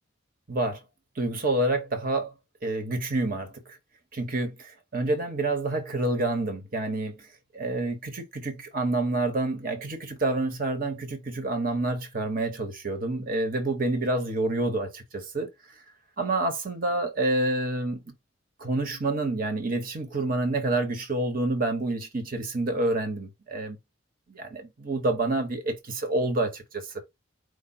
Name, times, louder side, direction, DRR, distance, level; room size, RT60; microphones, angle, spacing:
voice 1, 0.5-0.8 1.2-2.3 2.6-3.8 4.1-7.3 7.5-15.5 16.2-18.1 18.6-23.8 24.3-26.9, right 2 dB, 50° right, 1.2 m, -28 dB
5.0 x 2.3 x 4.2 m
head